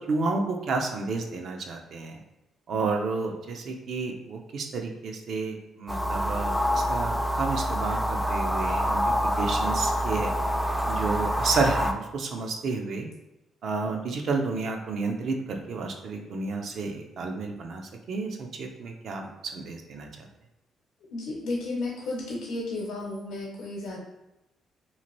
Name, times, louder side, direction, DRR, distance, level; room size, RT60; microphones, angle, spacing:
voice 1, 0.0-2.2 2.7-10.3 10.9-13.1 13.6-17.8 18.1-20.1, right 4 dB, 65° right, 3 dB, 0.5 m, -31 dB
sound 1, 5.9-11.9, equal, ahead, 0.3 m, -26 dB
voice 2, 21.1-24.0, left 2 dB, 80° left, -4 dB, 0.7 m, -33 dB
2.8 x 2.5 x 3.0 m, 0.92 s
cardioid pair, 90°, 0 cm